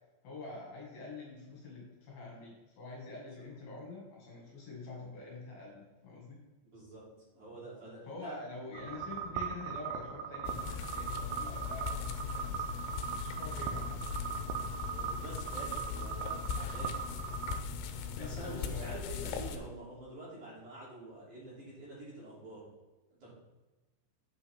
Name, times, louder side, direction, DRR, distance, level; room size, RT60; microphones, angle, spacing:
voice 1, 0.2-6.4 8.1-12.7 13.2-13.9 18.1-19.0, left 3 dB, 60° left, -3 dB, 3.6 m, -46 dB
voice 2, 6.6-8.4 14.8-16.9 18.1-22.7 23.2-23.3, right 1 dB, 45° right, -8 dB, 4.5 m, -47 dB
sound 1, 8.7-17.6, right 8 dB, 85° right, 2.2 m, -39 dB
sound 2, 10.5-19.6, left 7 dB, 80° left, 3.0 m, -39 dB
8.9 x 8.2 x 3.6 m, 1.2 s
omnidirectional pair, 5.2 m